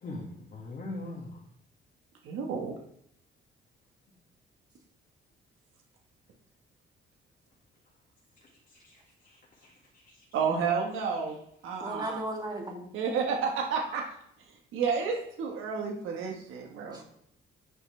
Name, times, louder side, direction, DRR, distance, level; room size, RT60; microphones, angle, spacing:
voice 1, 0.0-1.4 8.7-10.2, left 2 dB, 45° left, -1 dB, 1.8 m, -42 dB
voice 2, 2.2-2.7 10.3-11.3 11.6-12.2 12.9-14.0 14.7-17.0, right 6 dB, 85° right, 0 dB, 1.4 m, -30 dB
voice 3, 11.8-12.9 15.7-15.9 16.9-17.0, right 1 dB, 20° right, -1 dB, 2.4 m, -36 dB
10.0 x 5.7 x 3.3 m, 0.71 s
cardioid pair, 90°, 20 cm